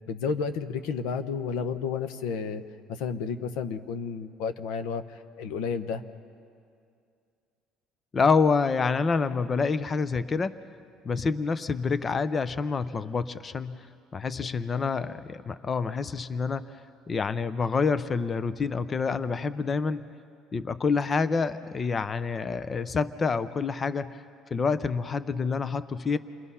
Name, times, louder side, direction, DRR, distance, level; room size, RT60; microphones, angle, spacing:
voice 1, 0.1-2.6 2.9-6.0 14.7-14.9, left 5 dB, 90° left, 10 dB, 0.9 m, -31 dB
voice 2, 8.1-10.6 11.0-13.9 14.1-16.8 17.1-20.0 20.5-24.2 24.5-26.2, left 5 dB, 25° left, 14 dB, 0.5 m, -27 dB
28.5 x 21.5 x 5.6 m, 2.3 s
cardioid pair, 135°, 0 cm